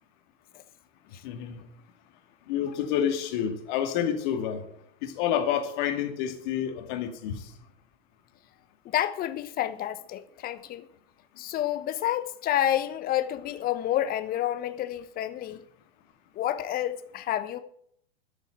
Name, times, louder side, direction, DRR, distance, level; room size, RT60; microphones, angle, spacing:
voice 1, 1.2-1.6 2.5-4.6 5.0-7.4, left 9 dB, 50° left, 2.3 m, -29 dB
voice 2, 8.8-10.9 11.4-15.6 16.4-17.6, left 12 dB, 30° left, 1.1 m, -29 dB
13.0 x 7.0 x 8.9 m
figure-of-eight pair, 100°, 31 cm